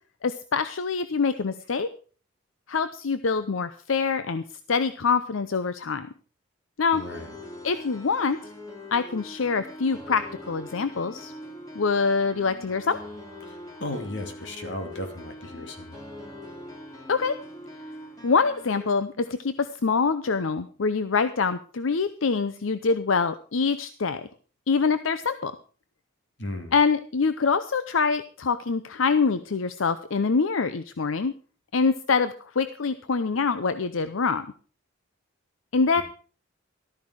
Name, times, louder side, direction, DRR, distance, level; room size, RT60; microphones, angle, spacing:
voice 1, 0.2-1.9 2.7-4.4 4.7-6.1 6.8-7.0 7.6-8.4 8.9-11.3 11.7-13.0 17.1-17.3 18.2-24.3 24.7-25.5 26.7-31.3 31.7-34.5 35.7-36.0, left 5 dB, 85° left, 12 dB, 0.7 m, -25 dB
voice 2, 6.9-7.3 13.5-16.0 26.4-26.7 35.9-36.0, left 1 dB, 60° left, 5 dB, 2.7 m, -35 dB
sound 1, 6.9-18.9, left 1 dB, 20° left, 2.5 m, -43 dB
13.5 x 13.0 x 4.8 m, 0.40 s
head